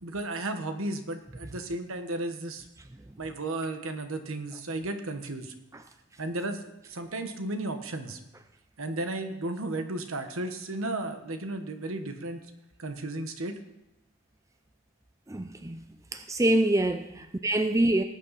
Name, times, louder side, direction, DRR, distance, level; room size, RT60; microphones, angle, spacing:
voice 1, 0.0-2.6 3.2-5.5 6.2-6.6 6.9-8.2 8.8-12.4 12.8-13.6, right 2 dB, 70° right, 1.3 m, -34 dB
voice 2, 15.3-15.8 16.1-18.0, right 1 dB, 15° right, 0.4 m, -25 dB
19.0 x 8.6 x 4.2 m
head